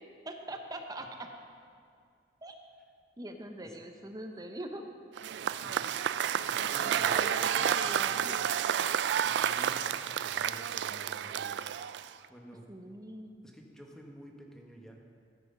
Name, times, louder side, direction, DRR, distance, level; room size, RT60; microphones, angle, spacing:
voice 1, 0.3-1.3 2.4-2.5 3.2-4.8 7.0-8.4 12.7-13.3, right 1 dB, 20° right, 4 dB, 0.7 m, -42 dB
Cheering / Applause / Crowd, 5.2-12.2, right 9 dB, 70° right, 0.3 m, -30 dB
voice 2, 5.5-7.8 8.0-8.3 9.1-11.6 12.3-12.7 13.4-15.0, equal, 5° left, 0 dB, 1.2 m, -51 dB
13.5 x 7.6 x 5.3 m, 2.3 s
head